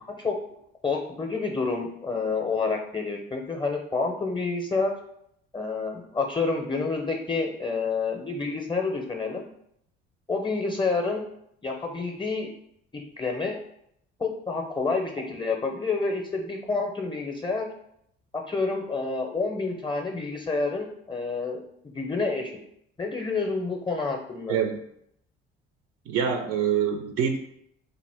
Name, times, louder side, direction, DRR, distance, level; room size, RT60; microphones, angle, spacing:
voice 1, 0.8-4.9 5.5-9.5 10.3-11.2 11.6-12.5 12.9-13.6 14.2-17.7 18.5-21.6 21.9-22.5 23.0-24.6, left 4 dB, 15° left, 2 dB, 0.5 m, -28 dB
voice 2, 24.5-24.8 26.1-27.4, right 7 dB, 50° right, 6 dB, 0.5 m, -25 dB
2.6 x 2.4 x 3.3 m, 0.72 s
hypercardioid pair, 55°, 30 cm